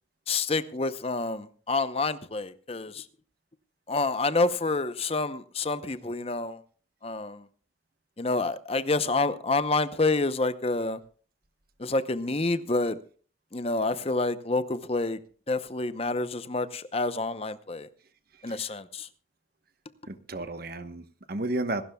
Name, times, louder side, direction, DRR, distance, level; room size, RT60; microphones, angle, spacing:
voice 1, 0.3-3.1 3.9-6.6 7.0-7.5 8.2-11.0 11.8-13.0 13.5-15.2 15.5-17.9 18.4-19.1, left 3 dB, 30° left, 0.8 m, -28 dB
voice 2, 20.1-21.8, right 2 dB, 50° right, 1.1 m, -32 dB
26.0 x 12.5 x 2.3 m
head